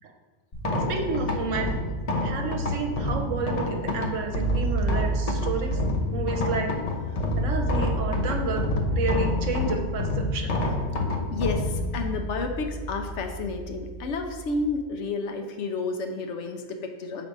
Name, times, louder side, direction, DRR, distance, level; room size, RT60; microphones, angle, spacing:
sound 1, 0.5-14.8, left 1 dB, 40° left, 0.6 m, -28 dB
voice 1, 0.9-1.8 2.2-5.8 6.1-6.7 7.4-10.6, right 4 dB, 70° right, 3 dB, 1.1 m, -30 dB
voice 2, 11.3-17.3, left 3 dB, 70° left, 5 dB, 0.9 m, -31 dB
6.4 x 4.0 x 4.7 m, 1.4 s
omnidirectional pair, 1.3 m